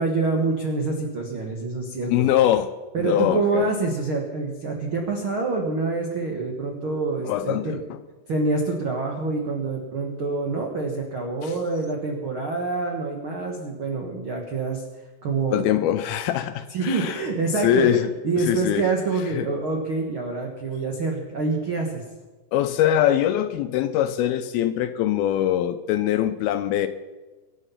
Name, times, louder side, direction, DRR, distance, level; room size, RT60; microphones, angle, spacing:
voice 1, 0.0-2.1 2.9-7.8 8.3-14.8 15.2-15.6 16.7-22.0, right 3 dB, 70° right, 1 dB, 1.2 m, -26 dB
voice 2, 2.1-2.7 3.0-3.7 7.3-8.0 11.4-11.6 15.5-17.2 17.6-18.1 18.4-18.8 19.3-19.5 22.5-26.9, left 11 dB, 80° left, 9 dB, 2.3 m, -23 dB
23.5 x 8.1 x 5.7 m, 1.2 s
omnidirectional pair, 4.8 m